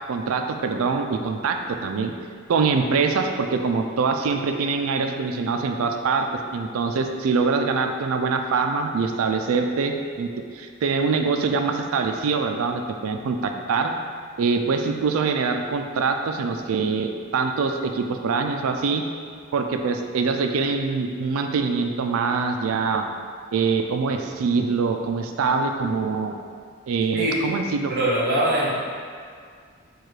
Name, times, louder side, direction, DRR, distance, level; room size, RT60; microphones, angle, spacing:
voice 1, 0.1-2.1 2.5-6.3 6.5-10.3 10.5-13.9 14.4-19.0 19.5-23.0 23.5-26.3 26.9-27.9, right 4 dB, 85° right, 5 dB, 0.4 m, -24 dB
voice 2, 27.1-27.5 27.9-28.7, right 1 dB, 50° right, -8 dB, 0.8 m, -22 dB
4.6 x 2.4 x 4.6 m, 2.1 s
head